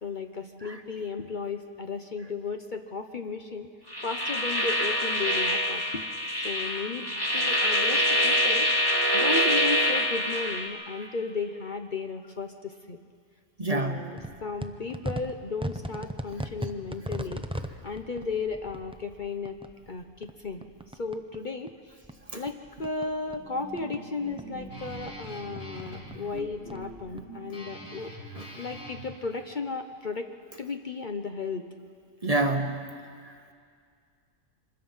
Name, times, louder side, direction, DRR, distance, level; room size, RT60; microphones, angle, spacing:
voice 1, 0.0-3.7 4.0-6.0 6.4-13.0 13.7-17.4 17.8-19.6 19.9-20.7 21.0-21.7 22.3-22.5 22.8-30.3 30.6-31.7, left 4 dB, 45° left, 6 dB, 0.9 m, -35 dB
sound 1, 3.9-10.7, equal, 20° left, 2.1 m, -25 dB
voice 2, 13.6-14.0 22.3-22.4 28.4-28.5 32.2-32.9 33.2-33.5, right 2 dB, 30° right, 5 dB, 1.1 m, -28 dB
sound 2, 14.2-21.4 21.7-24.0 24.3-27.2, right 1 dB, 5° right, 0.5 m, -39 dB
Guitar, 23.3-29.0, right 1 dB, 85° left, 3.9 m, -43 dB
25.0 x 20.5 x 5.5 m, 2.2 s
omnidirectional pair, 1.3 m